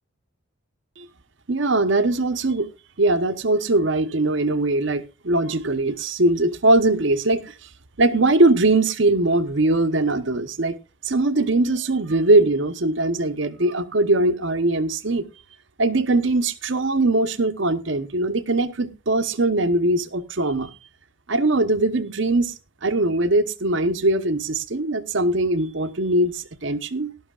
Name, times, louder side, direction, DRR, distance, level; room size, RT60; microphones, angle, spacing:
voice 1, 1.5-2.7 3.0-7.6 8.0-10.8 11.0-15.2 15.8-20.7 21.3-22.5 22.8-27.1, right 2 dB, 60° right, 1.0 m, -21 dB
17.5 x 12.0 x 2.4 m
head